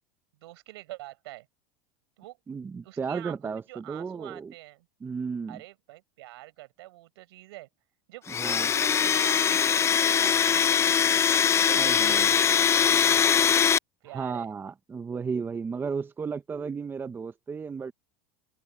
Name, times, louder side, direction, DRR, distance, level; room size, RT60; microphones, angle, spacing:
voice 1, 0.4-1.5 2.2-2.4 2.8-4.9 5.5-7.7 8.1-8.3 8.6-11.3 11.7-13.2 14.0-14.5, right 18 dB, 80° right, 4.4 m, -45 dB
voice 2, 2.5-4.5 5.0-5.6 8.3-8.7 11.7-12.3 14.0-17.9, right 5 dB, 15° right, 0.7 m, -34 dB
Domestic sounds home sounds, 8.3-13.8, left 8 dB, 20° left, 0.5 m, -22 dB
supercardioid pair, 130°, 13 cm